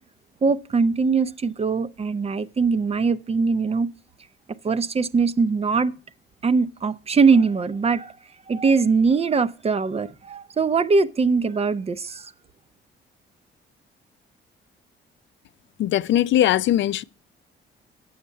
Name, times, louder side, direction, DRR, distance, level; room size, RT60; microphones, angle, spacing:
voice 1, 0.4-3.9 4.6-5.9 6.4-8.1 8.5-12.3, right 4 dB, 30° right, 0.6 m, -21 dB
voice 2, 15.8-17.0, left 12 dB, 70° left, 0.5 m, -20 dB
9.4 x 7.2 x 5.5 m
cardioid pair, 90°, 20 cm